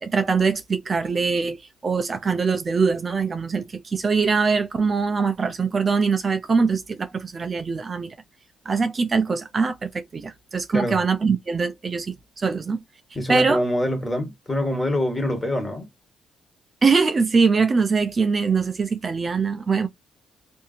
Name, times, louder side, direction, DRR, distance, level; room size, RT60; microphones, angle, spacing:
voice 1, 0.0-8.1 8.7-12.8 13.3-13.6 16.8-19.9, right 5 dB, 35° right, 0.5 m, -22 dB
voice 2, 13.1-15.9, left 1 dB, 15° left, 1.4 m, -25 dB
2.7 x 2.6 x 2.4 m
cardioid pair, 90°, 0 cm